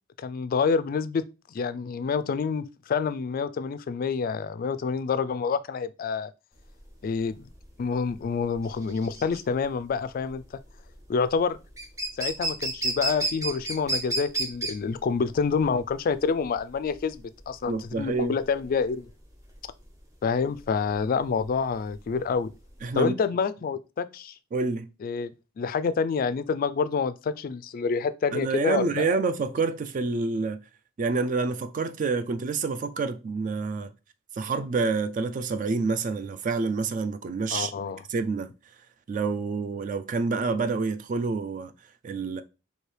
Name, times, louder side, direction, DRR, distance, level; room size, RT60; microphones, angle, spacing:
voice 1, 0.2-1.2 1.5-6.3 7.0-7.5 7.8-10.4 11.1-11.6 12.2-19.1 20.2-22.5 22.9-24.3 25.0-25.3 25.6-29.1 37.5-38.0, left 5 dB, 45° left, 0.3 m, -27 dB
sound 1, 6.6-23.0, right 2 dB, 15° right, 0.9 m, -33 dB
voice 2, 17.7-18.4 22.8-23.1 24.5-24.9 28.3-30.6 31.0-33.9 34.3-37.7 38.1-38.5 39.1-41.7 42.0-42.4, right 4 dB, 40° right, 0.3 m, -28 dB
4.5 x 2.7 x 3.2 m
head